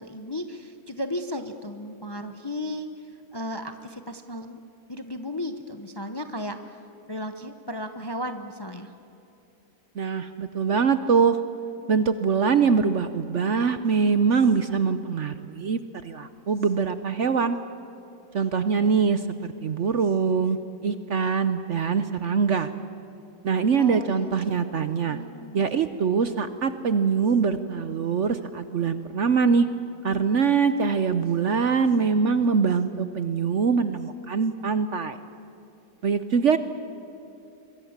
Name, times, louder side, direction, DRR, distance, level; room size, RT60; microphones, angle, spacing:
voice 1, 0.0-2.9 3.3-4.6 4.9-6.8 7.1-8.9 23.8-24.5 25.1-25.6, left 1 dB, 20° left, 7 dB, 0.7 m, -35 dB
voice 2, 10.0-11.4 11.9-17.6 18.3-20.6 20.8-22.7 23.4-25.2 25.5-29.7 30.0-35.2 36.0-36.6, right 5 dB, 55° right, 11 dB, 0.9 m, -23 dB
25.5 x 22.5 x 7.3 m, 2.9 s
omnidirectional pair, 1.8 m